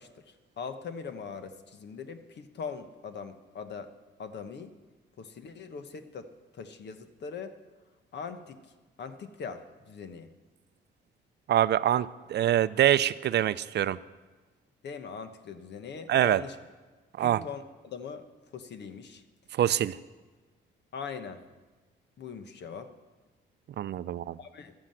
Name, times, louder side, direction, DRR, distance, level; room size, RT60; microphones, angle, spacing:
voice 1, 0.0-3.9 4.2-4.7 5.2-7.5 8.1-8.6 9.0-10.3 14.8-16.6 17.2-18.2 18.5-19.2 20.9-21.4 22.2-22.9 24.4-24.7, left 6 dB, 60° left, 9 dB, 1.2 m, -41 dB
voice 2, 11.5-14.0 16.1-16.4 17.2-17.4 19.6-20.0 23.8-24.4, right 11 dB, 60° right, 16 dB, 0.5 m, -25 dB
12.5 x 9.9 x 7.7 m, 1.3 s
cardioid pair, 90°, 20 cm